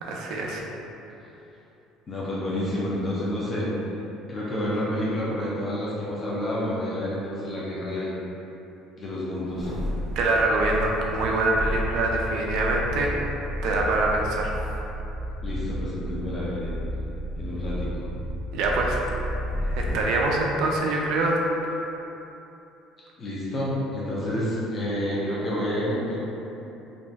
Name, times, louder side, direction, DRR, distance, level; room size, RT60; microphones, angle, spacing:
voice 1, 0.0-0.6 10.2-13.1 13.6-14.5 18.5-19.0 19.6-21.4, right 2 dB, 65° right, -1 dB, 0.4 m, -24 dB
voice 2, 2.1-3.7 4.3-8.1 9.0-9.7 15.4-16.7 17.4-18.1 23.2-26.2, left 1 dB, 25° left, -7 dB, 0.5 m, -29 dB
sound 1, 9.5-20.1 20.6-20.7, equal, 80° left, 0.7 m, -32 dB
2.6 x 2.2 x 3.2 m, 3.0 s
cardioid pair, 150°, 0 cm